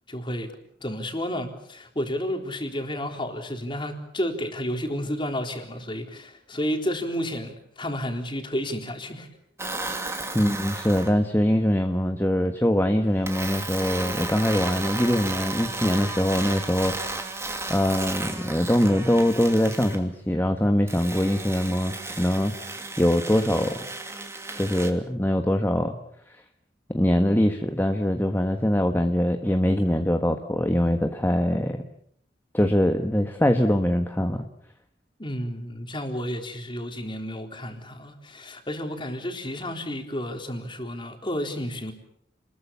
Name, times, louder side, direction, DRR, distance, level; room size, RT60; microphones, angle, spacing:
voice 1, 0.1-0.5 0.8-9.3 35.2-41.9, equal, 25° left, 4 dB, 3.9 m, -31 dB
sound 1, 9.6-11.1 13.2-20.0 20.9-24.9, right 2 dB, 15° right, 2.7 m, -34 dB
voice 2, 10.3-16.9 17.7-22.5 23.0-23.7 24.6-25.9 26.9-31.8 32.5-34.5, equal, 10° left, 5 dB, 1.4 m, -23 dB
29.5 x 21.5 x 7.1 m, 0.68 s
head